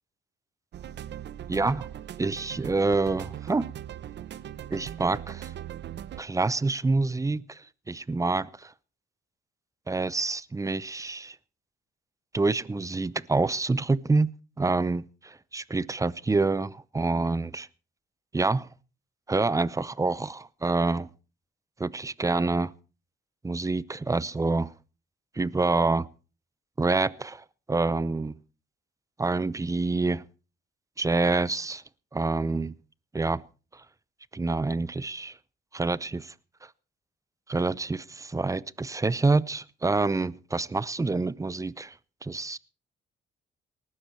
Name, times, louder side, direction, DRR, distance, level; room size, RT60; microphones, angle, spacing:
sound 1, 0.7-6.2, right 10 dB, 60° right, 0.8 m, -40 dB
voice 1, 1.5-1.9 2.2-3.7 4.7-5.5 6.2-7.6 7.9-8.7 9.9-11.4 12.3-14.3 14.6-17.7 18.3-18.7 19.3-21.1 21.8-22.7 23.4-24.7 25.4-26.1 26.8-28.3 29.2-30.2 31.0-31.8 32.1-32.7 33.1-33.4 34.3-35.3 35.7-36.3 37.5-41.9 42.2-42.6, right 3 dB, 15° right, 0.7 m, -27 dB
19.0 x 12.5 x 4.5 m
cardioid pair, 90°, 20 cm